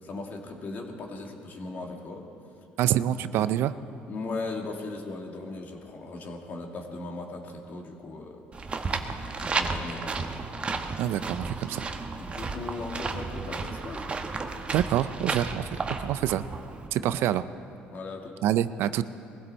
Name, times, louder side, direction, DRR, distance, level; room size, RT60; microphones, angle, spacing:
voice 1, 0.0-2.3 3.4-3.5 4.1-8.4 8.6-10.3 12.2-14.1 17.0-17.1 17.9-18.4, left 3 dB, 50° left, 2 dB, 2.2 m, -38 dB
voice 2, 2.8-3.7 11.0-11.8 14.7-16.5 16.9-17.4 18.4-19.0, right 12 dB, 70° right, 14 dB, 0.5 m, -26 dB
sound 1, 8.5-16.9, right 4 dB, 30° right, 1.0 m, -33 dB
21.0 x 15.5 x 4.2 m, 2.6 s
cardioid pair, 105°, 4 cm